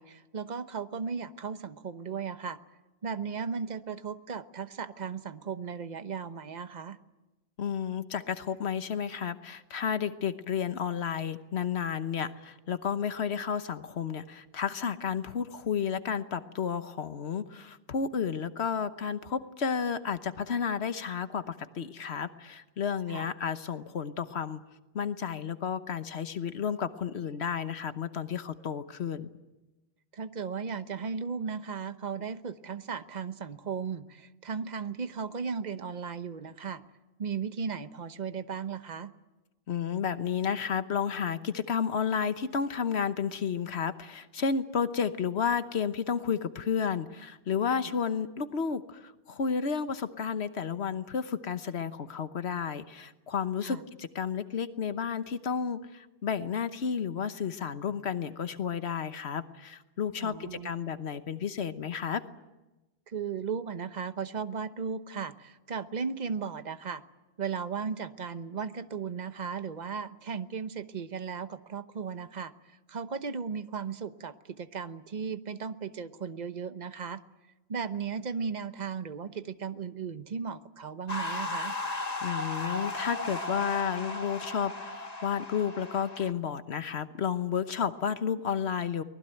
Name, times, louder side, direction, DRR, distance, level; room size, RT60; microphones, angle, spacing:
voice 1, 0.0-2.6 3.0-7.0 23.1-23.3 30.1-36.8 37.2-39.1 53.6-53.8 60.2-60.7 63.1-67.0 67.4-72.5 72.9-77.2 77.7-81.8, right 6 dB, 45° right, 11 dB, 1.1 m, -36 dB
voice 2, 7.6-24.6 24.9-29.3 39.7-62.2 82.2-89.0, left 7 dB, 75° left, 11 dB, 1.3 m, -32 dB
sound 1, 81.1-86.3, left 2 dB, 35° left, 1.7 m, -36 dB
24.0 x 19.5 x 9.1 m, 1.1 s
omnidirectional pair, 1.1 m